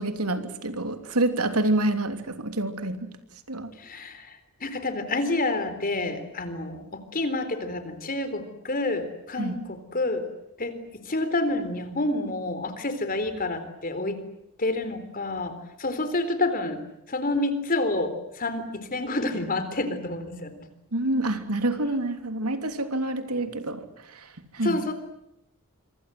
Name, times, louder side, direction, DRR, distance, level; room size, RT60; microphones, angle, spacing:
voice 1, 0.0-3.1 3.5-3.7 9.4-9.5 20.9-24.8, right 2 dB, 90° right, 8 dB, 3.2 m, -27 dB
voice 2, 3.8-10.2 10.6-14.2 14.6-16.8 17.1-20.7 24.6-24.9, left 2 dB, 40° left, 10 dB, 3.8 m, -29 dB
26.0 x 26.0 x 7.9 m, 0.80 s
head